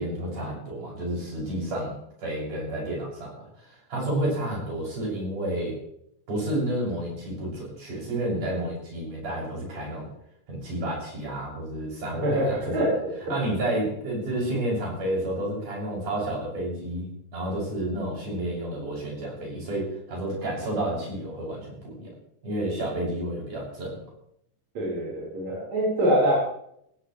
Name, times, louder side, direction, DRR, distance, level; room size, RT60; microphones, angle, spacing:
voice 1, 0.0-5.8 6.3-10.1 10.5-12.9 13.3-22.1 22.4-24.0, right 1 dB, 70° right, -3 dB, 8.2 m, -30 dB
voice 2, 12.2-12.9 13.3-13.4 24.8-26.4, right 1 dB, 55° right, -6 dB, 5.8 m, -24 dB
18.0 x 15.5 x 3.2 m, 0.71 s
omnidirectional pair, 3.7 m